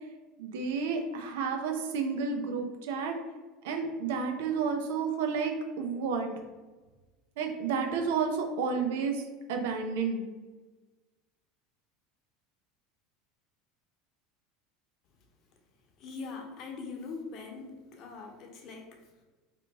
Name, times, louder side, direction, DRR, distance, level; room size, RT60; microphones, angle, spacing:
voice 1, 0.4-3.1 3.6-6.3 7.4-9.2 9.5-10.3, right 5 dB, 75° right, 3 dB, 0.6 m, -31 dB
voice 2, 16.0-19.2, left 4 dB, 55° left, 2 dB, 0.7 m, -42 dB
2.9 x 2.5 x 3.4 m, 1.3 s
hypercardioid pair, 90°, 0 cm